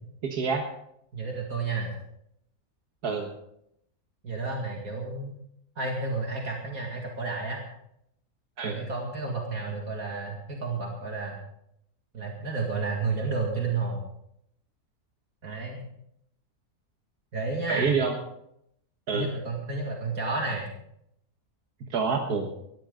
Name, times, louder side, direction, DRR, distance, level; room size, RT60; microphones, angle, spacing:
voice 1, 0.2-0.7 3.0-3.3 8.6-8.8 17.7-18.1 19.1-19.3 21.9-22.5, right 5 dB, 90° right, 2 dB, 2.0 m, -27 dB
voice 2, 1.1-1.9 4.2-5.4 5.8-7.6 8.6-11.4 12.1-14.0 15.4-15.9 17.3-17.9 19.1-20.7, right 3 dB, 65° right, 0 dB, 2.6 m, -31 dB
20.0 x 14.0 x 3.9 m, 0.75 s
omnidirectional pair, 1.6 m